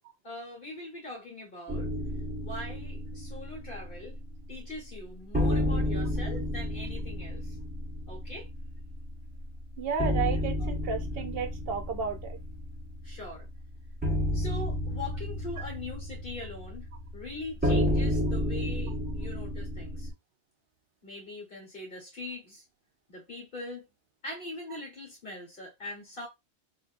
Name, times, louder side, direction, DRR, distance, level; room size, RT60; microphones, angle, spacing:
voice 1, 0.2-1.9 2.4-4.2 4.5-7.5 8.1-8.5 13.0-13.5 14.3-16.9 17.1-20.1 21.0-22.6 23.1-23.9 24.2-26.3, left 2 dB, 50° left, 1.5 m, -42 dB
sound 1, 1.7-4.5 4.8-4.9 5.3-20.1, left 1 dB, 10° right, 1.2 m, -31 dB
voice 2, 9.8-12.4, right 5 dB, 60° right, 0.8 m, -32 dB
3.8 x 2.7 x 2.5 m
omnidirectional pair, 1.2 m